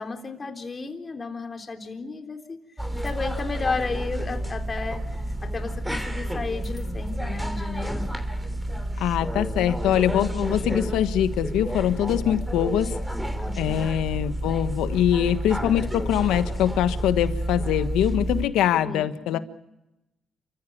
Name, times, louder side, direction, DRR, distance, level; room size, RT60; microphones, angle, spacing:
voice 1, 0.0-2.6 3.0-8.1 13.4-13.9 18.7-19.4, left 4 dB, 30° left, 5 dB, 3.6 m, -33 dB
office ambience long, 2.8-18.5, right 1 dB, 5° right, 3.1 m, -30 dB
voice 2, 9.0-13.0 13.5-19.4, left 11 dB, 90° left, 11 dB, 1.4 m, -23 dB
29.5 x 15.0 x 8.6 m, 0.94 s
cardioid pair, 90°, 0 cm